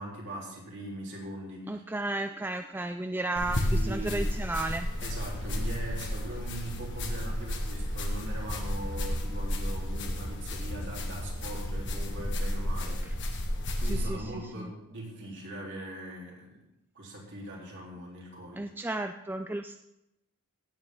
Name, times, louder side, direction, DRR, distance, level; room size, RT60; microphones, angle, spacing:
voice 1, 0.0-1.8 3.4-4.2 5.0-13.0 13.8-16.6 16.9-18.6, right 1 dB, 55° right, -3 dB, 3.8 m, -41 dB
voice 2, 1.7-4.9 13.0-13.1 13.8-14.3 14.6-14.7 18.5-19.8, right 2 dB, 10° right, 7 dB, 0.3 m, -33 dB
sound 1, 3.4-14.1, left 1 dB, 55° left, 1.6 m, -32 dB
16.5 x 8.8 x 3.9 m, 0.88 s
head